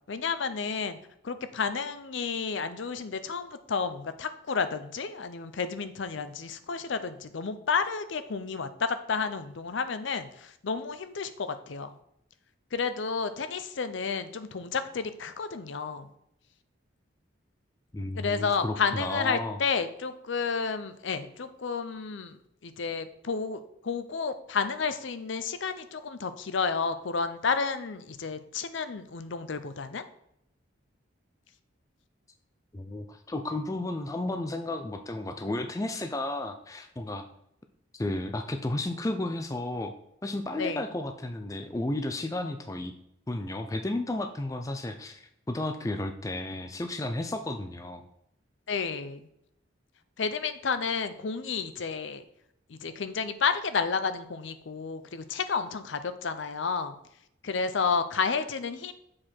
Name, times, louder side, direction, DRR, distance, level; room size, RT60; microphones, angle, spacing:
voice 1, 0.1-1.0 1.2-11.9 12.7-16.1 18.1-30.0 40.6-40.9 48.7-49.3 50.2-52.2 52.7-56.9 57.4-58.9, left 5 dB, 65° left, 11 dB, 0.6 m, -31 dB
voice 2, 17.9-19.6 32.7-37.2 37.9-39.9 40.2-42.9 43.3-48.1, left 2 dB, 15° left, 7 dB, 0.4 m, -33 dB
7.4 x 4.6 x 4.4 m, 0.76 s
head